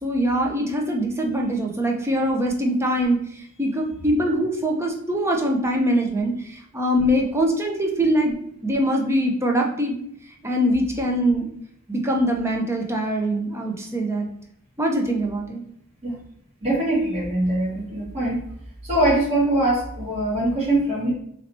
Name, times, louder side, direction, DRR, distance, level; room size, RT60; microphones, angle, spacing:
voice 1, 0.0-9.9 10.4-11.5 11.9-14.3 14.8-15.6, equal, 10° right, 1 dB, 0.6 m, -23 dB
voice 2, 16.6-18.4 18.8-21.1, right 1 dB, 30° right, -9 dB, 1.6 m, -22 dB
3.1 x 2.8 x 4.2 m, 0.70 s
head